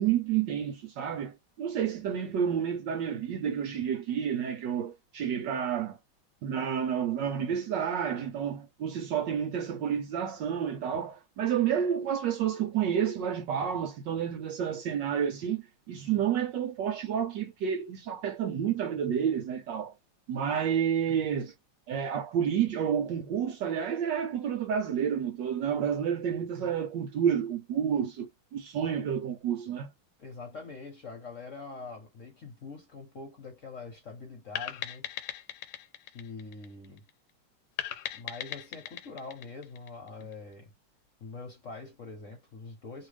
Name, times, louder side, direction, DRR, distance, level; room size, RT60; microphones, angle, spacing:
voice 1, 0.0-6.0 6.4-19.9 20.3-21.5 21.9-29.9, right 8 dB, 70° right, 1.2 m, -30 dB
voice 2, 30.2-35.1 36.0-37.0 38.1-40.7 41.2-43.1, left 4 dB, 45° left, 1.1 m, -44 dB
sound 1, 34.6-37.1 37.8-40.3, left 12 dB, 85° left, 1.5 m, -39 dB
3.3 x 2.4 x 3.2 m
omnidirectional pair, 2.3 m